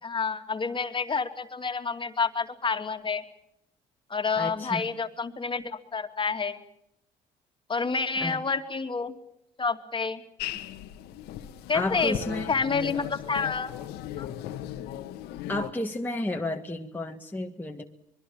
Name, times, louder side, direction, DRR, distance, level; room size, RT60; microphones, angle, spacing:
voice 1, 0.0-3.2 4.1-6.6 7.7-9.1 9.6-10.2 11.7-12.2 12.5-13.7 14.2-14.3, left 5 dB, 30° left, 7 dB, 2.5 m, -29 dB
voice 2, 4.4-4.8 8.2-8.4 11.7-12.5 15.5-17.8, left 1 dB, 10° left, 2 dB, 1.9 m, -32 dB
sound 1, 10.4-15.7, left 12 dB, 80° left, 1.7 m, -37 dB
25.0 x 22.5 x 7.3 m, 0.75 s
supercardioid pair, 75°, 17 cm